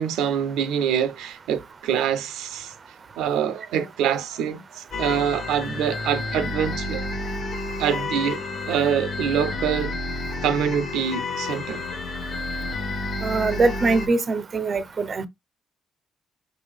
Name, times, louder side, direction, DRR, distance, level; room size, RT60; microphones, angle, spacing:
voice 1, 0.0-2.7 3.2-7.1 7.8-8.4 8.7-9.9 10.4-11.8, right 8 dB, 90° right, 0.6 m, -25 dB
sound 1, 4.9-14.1, left 2 dB, 50° left, 1.2 m, -30 dB
voice 2, 13.2-15.3, right 3 dB, 35° right, 0.6 m, -22 dB
5.3 x 2.7 x 3.5 m
cardioid pair, 125°, 0 cm